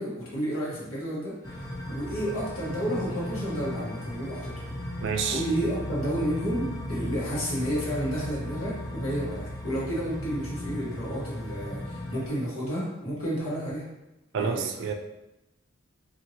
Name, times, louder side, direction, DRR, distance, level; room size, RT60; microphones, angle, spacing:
voice 1, 0.0-1.6 1.9-4.7 5.3-13.9 14.3-14.7, equal, 90° left, -6 dB, 1.2 m, -31 dB
sound 1, 1.4-12.3, left 1 dB, 20° left, 0.4 m, -36 dB
voice 2, 5.0-5.4 14.3-14.9, right 6 dB, 60° right, 5 dB, 0.3 m, -28 dB
2.8 x 2.8 x 2.8 m, 0.93 s
head